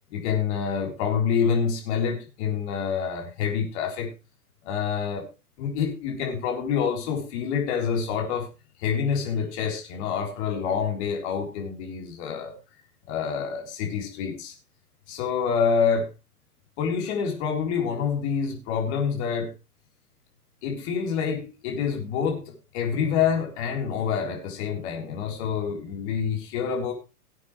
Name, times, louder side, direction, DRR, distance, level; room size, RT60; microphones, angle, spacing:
voice 1, 0.1-4.1 4.6-5.3 5.6-8.5 8.8-12.6 13.1-14.5 15.1-16.1 16.8-19.5 20.6-26.9, left 6 dB, 45° left, 2 dB, 4.1 m, -27 dB
18.0 x 8.3 x 3.2 m, 0.27 s
hypercardioid pair, 115°, 47 cm